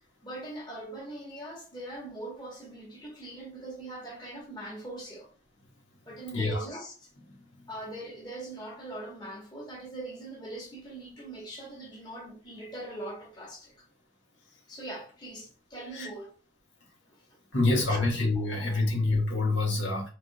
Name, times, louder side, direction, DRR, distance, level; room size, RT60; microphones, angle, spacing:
voice 1, 0.2-5.3 6.0-7.1 7.7-13.9 14.7-16.3 17.1-17.4 17.9-18.1 18.3-18.9, right 1 dB, 25° left, 1.5 m, -41 dB
voice 2, 6.3-6.6 15.9-16.1 17.5-20.1, left 2 dB, 85° left, 1.8 m, -26 dB
4.8 x 3.7 x 2.4 m
head